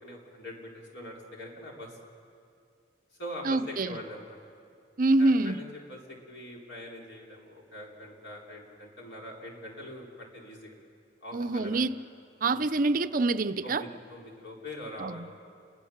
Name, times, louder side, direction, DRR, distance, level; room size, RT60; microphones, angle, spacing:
voice 1, 0.0-2.0 3.2-4.4 5.2-10.7 11.2-11.9 12.5-12.7 13.6-15.3, left 1 dB, 70° left, -1 dB, 4.3 m, -43 dB
voice 2, 3.5-3.9 5.0-5.6 11.3-11.9 12.4-13.8 15.0-15.3, right 2 dB, 50° right, 11 dB, 0.6 m, -26 dB
29.0 x 21.0 x 7.3 m, 2.5 s
head